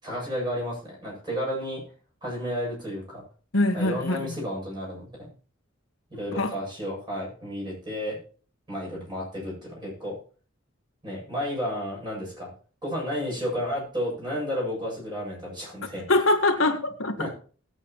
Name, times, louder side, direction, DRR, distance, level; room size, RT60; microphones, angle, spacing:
voice 1, 0.0-1.8 2.2-3.2 3.7-5.3 6.1-8.2 8.7-10.2 11.0-12.5 12.8-16.0 17.2-17.3, equal, 20° right, 7.8 m, -32 dB
voice 2, 3.5-4.2 6.3-6.5 16.1-17.3, left 2 dB, 75° left, 1.6 m, -23 dB
19.5 x 8.3 x 3.1 m
head